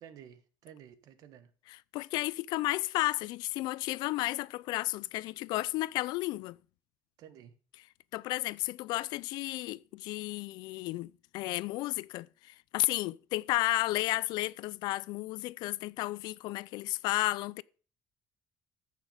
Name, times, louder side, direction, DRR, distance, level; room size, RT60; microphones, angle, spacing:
voice 1, 0.0-1.5 7.2-7.5, right 9 dB, 55° right, 1.3 m, -52 dB
voice 2, 1.7-6.6 7.8-7.9 8.1-17.6, left 18 dB, 70° left, 0.4 m, -33 dB
14.0 x 6.5 x 5.1 m
cardioid pair, 165°, 8 cm